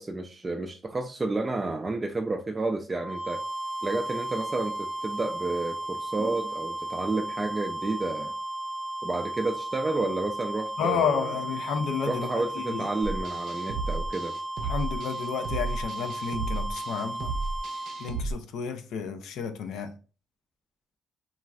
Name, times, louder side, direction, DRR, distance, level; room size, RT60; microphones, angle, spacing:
voice 1, 0.0-3.4 3.8-8.3 9.0-11.4 12.1-14.3, right 2 dB, 25° right, 0.3 m, -31 dB
sound 1, 2.9-18.2, right 1 dB, 15° left, 0.7 m, -35 dB
voice 2, 10.8-12.9 14.6-17.3 18.0-19.9, left 6 dB, 80° left, 0.4 m, -31 dB
sound 2, 13.0-18.3, right 3 dB, 80° right, 0.5 m, -33 dB
3.0 x 2.4 x 2.3 m
cardioid pair, 90°, 0 cm